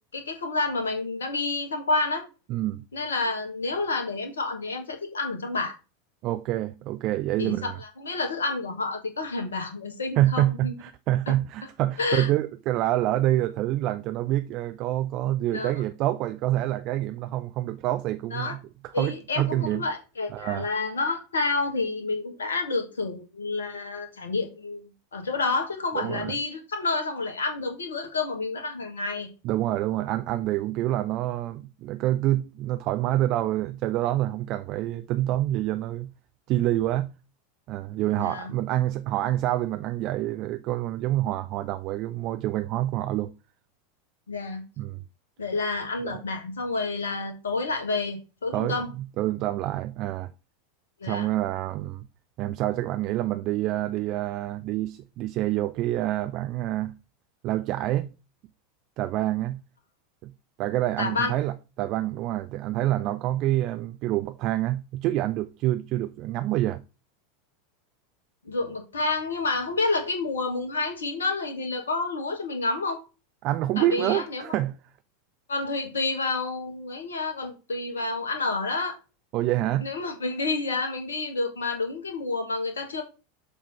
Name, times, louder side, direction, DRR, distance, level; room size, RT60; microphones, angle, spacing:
voice 1, 0.1-2.2 2.9-5.7 7.4-10.7 11.3-11.4 12.0-12.3 15.5-15.7 18.3-18.5 18.9-29.3 38.2-38.5 44.3-44.6 45.4-48.9 51.0-51.3 61.0-61.3 68.4-73.0 73.8-74.5 75.5-79.0 79.8-83.0, left 3 dB, 70° left, 1.5 m, -29 dB
voice 2, 6.2-7.7 10.2-19.9 20.3-20.7 25.9-26.3 29.4-36.1 36.5-37.1 37.7-43.3 44.8-45.0 46.0-46.2 48.5-50.3 51.0-52.1 52.4-56.9 57.4-58.1 59.0-59.6 60.2-60.3 60.6-66.8 73.4-74.8 79.3-79.9, right 14 dB, 45° right, 0.4 m, -27 dB
7.0 x 3.6 x 5.6 m
figure-of-eight pair, 85°, 0 cm